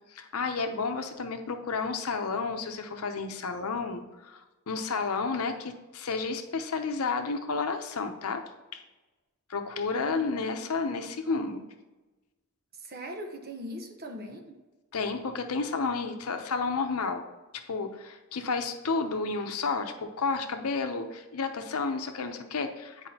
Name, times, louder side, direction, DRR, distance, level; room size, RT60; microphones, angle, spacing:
voice 1, 0.1-8.4 8.7-8.8 9.5-11.6 14.9-17.2 17.7-23.1, left 4 dB, 75° left, 6 dB, 0.7 m, -31 dB
voice 2, 9.9-10.9 12.8-14.6, equal, 45° right, 3 dB, 0.9 m, -41 dB
9.5 x 4.8 x 2.8 m, 1.1 s
head